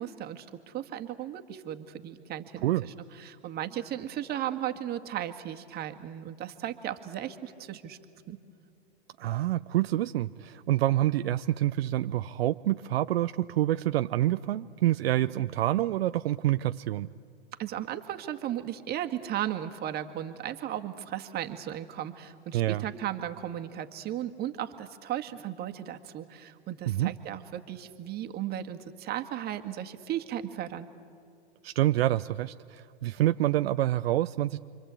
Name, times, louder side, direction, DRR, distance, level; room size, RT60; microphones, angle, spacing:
voice 1, 0.0-8.0 8.3-8.4 17.6-30.9, right 11 dB, 30° right, 6 dB, 1.9 m, -36 dB
voice 2, 9.2-17.1 22.5-22.8 26.9-27.1 31.6-34.6, right 14 dB, 60° right, 11 dB, 0.7 m, -27 dB
29.0 x 25.0 x 8.4 m, 2.4 s
hypercardioid pair, 115°, 33 cm